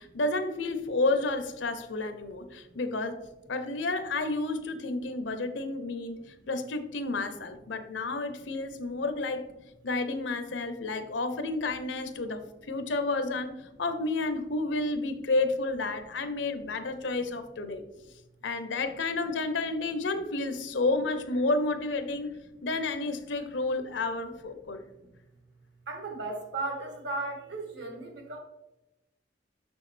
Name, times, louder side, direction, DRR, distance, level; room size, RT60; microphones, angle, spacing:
voice 1, 0.0-3.2 3.5-9.5 9.8-12.4 12.7-17.9 18.4-24.8, left 2 dB, 80° left, 8 dB, 0.7 m, -31 dB
voice 2, 25.9-28.4, right 2 dB, 75° right, 3 dB, 1.3 m, -36 dB
6.4 x 6.2 x 3.3 m, 0.96 s
head